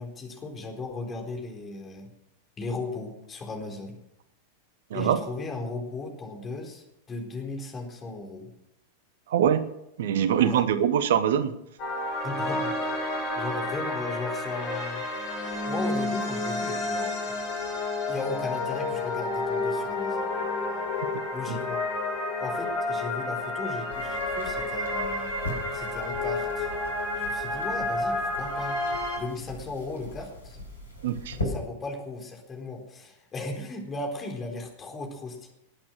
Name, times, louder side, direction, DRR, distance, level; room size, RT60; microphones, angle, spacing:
voice 1, 0.0-2.1 2.6-4.0 4.9-8.5 10.4-10.7 12.2-12.9 13.1-15.0 15.6-17.4 18.1-20.9 21.3-21.8 22.4-25.3 25.7-26.7 27.2-30.6 31.4-35.5, left 3 dB, 20° left, 2 dB, 4.0 m, -36 dB
voice 2, 9.3-9.7 10.0-11.5 31.0-31.4, right 9 dB, 60° right, 13 dB, 1.0 m, -23 dB
sound 1, 11.8-29.2, left 2 dB, 45° left, 6.7 m, -30 dB
sound 2, 23.9-31.5, left 1 dB, 75° left, 4.6 m, -40 dB
20.0 x 8.7 x 6.4 m, 0.81 s
figure-of-eight pair, 90°, 0 cm